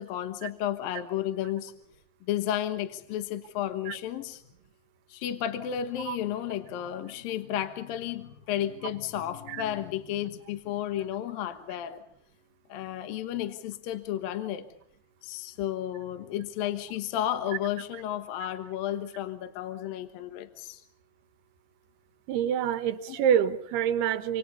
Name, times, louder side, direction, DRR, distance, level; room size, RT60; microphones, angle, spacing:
voice 1, 0.0-1.7 2.3-4.4 5.1-12.0 12.7-14.7 15.2-20.8, left 11 dB, 70° left, 2.9 m, -32 dB
voice 2, 22.3-24.4, right 9 dB, 90° right, 3.4 m, -26 dB
29.0 x 26.5 x 5.5 m
omnidirectional pair, 4.5 m